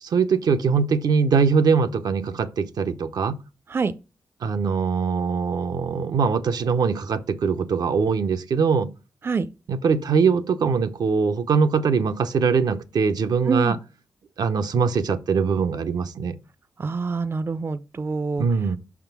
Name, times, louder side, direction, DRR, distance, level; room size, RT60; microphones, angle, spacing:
voice 1, 0.0-3.4 4.4-8.9 9.7-13.8 14.4-16.4 18.4-18.8, right 5 dB, 75° right, 0.6 m, -22 dB
voice 2, 13.5-13.8 16.8-18.4, right 4 dB, 35° right, 0.4 m, -25 dB
5.7 x 3.6 x 5.9 m
cardioid pair, 70°, 7 cm